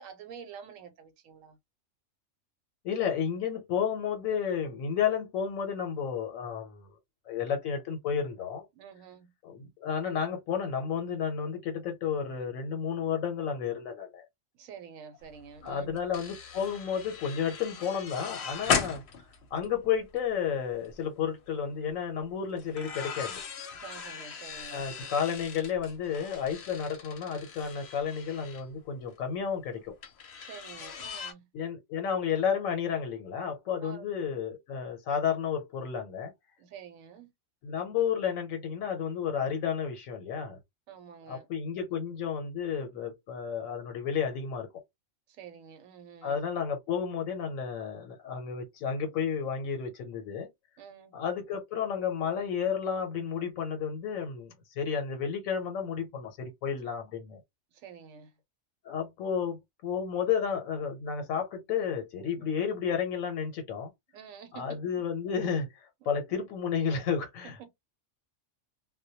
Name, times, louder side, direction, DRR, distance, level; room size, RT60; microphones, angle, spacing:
voice 1, 0.0-1.6 8.7-9.3 14.5-16.0 18.6-18.8 23.7-24.9 30.4-31.5 33.8-34.3 36.6-37.3 40.9-41.5 45.3-46.4 50.8-51.1 57.7-58.4 62.4-62.6 64.1-64.8 66.0-66.1 67.4-67.7, right 7 dB, 80° right, 1.0 m, -48 dB
voice 2, 2.8-6.9 7.3-8.7 9.4-14.2 15.6-19.0 19.5-23.4 24.7-30.0 31.5-36.3 37.6-40.6 41.3-44.7 46.2-50.5 51.1-57.4 58.8-63.9 64.5-67.7, left 7 dB, 85° left, 1.0 m, -32 dB
sound 1, 15.3-15.4 15.6-20.3 20.7-20.9 22.6-28.6 30.0-31.3, left 6 dB, 60° left, 0.8 m, -37 dB
2.2 x 2.1 x 2.7 m
omnidirectional pair, 1.4 m